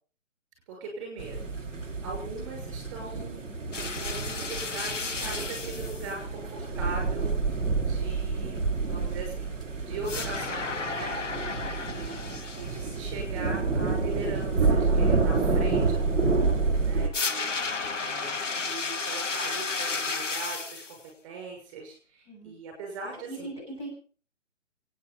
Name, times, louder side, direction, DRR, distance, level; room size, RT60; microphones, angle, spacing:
voice 1, 0.7-1.5 1.7-3.5 4.0-9.5 9.8-11.2 11.5-23.5, right 3 dB, 15° right, 1 dB, 6.0 m, -41 dB
sound 1, 1.2-17.1, right 4 dB, 5° left, 0.8 m, -28 dB
sound 2, 3.7-6.1 10.1-13.0 17.1-21.0, left 4 dB, 75° left, 2.2 m, -33 dB
voice 2, 23.3-23.9, right 2 dB, 25° left, -3 dB, 8.0 m, -40 dB
27.5 x 9.5 x 5.3 m, 0.41 s
hypercardioid pair, 175°, 37 cm